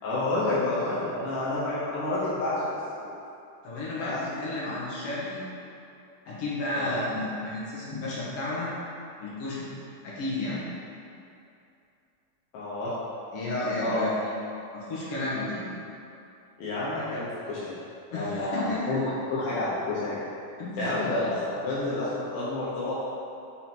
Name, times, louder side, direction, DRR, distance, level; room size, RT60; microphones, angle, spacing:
voice 1, 0.0-2.7 3.0-3.1 4.0-4.2 6.8-6.9 12.5-13.0 13.8-14.0 16.6-17.8 18.1-20.2 20.8-23.1, left 2 dB, 80° left, -9 dB, 2.5 m, -29 dB
voice 2, 3.6-5.4 6.2-8.7 9.2-9.7 10.0-10.6 13.3-14.3 14.7-15.7 18.1-18.8 20.6-20.8, left 2 dB, 60° left, -8 dB, 1.7 m, -32 dB
5.5 x 4.0 x 4.4 m, 2.6 s
omnidirectional pair, 3.8 m